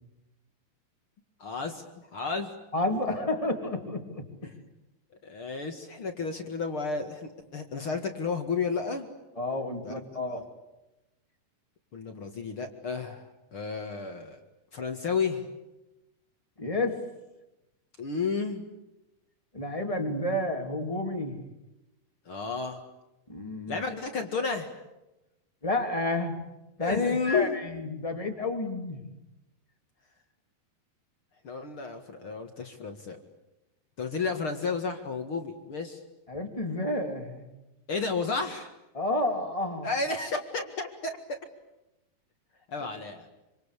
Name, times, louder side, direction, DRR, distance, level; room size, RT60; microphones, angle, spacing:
voice 1, 1.4-2.5 4.4-4.5 5.2-9.1 9.8-9.9 10.3-10.4 11.9-14.4 14.7-15.5 18.0-18.7 22.3-22.8 23.7-24.7 26.8-27.7 31.4-33.2 34.0-36.0 37.9-38.7 39.8-41.4 42.7-43.3, left 4 dB, 45° left, 5 dB, 2.1 m, -32 dB
voice 2, 2.7-4.5 9.4-10.4 16.6-17.0 19.5-21.4 23.3-23.8 25.6-26.4 26.8-29.0 36.3-37.4 38.9-39.9, left 2 dB, 10° left, 4 dB, 2.4 m, -30 dB
27.0 x 26.5 x 8.4 m, 0.96 s
omnidirectional pair, 4.6 m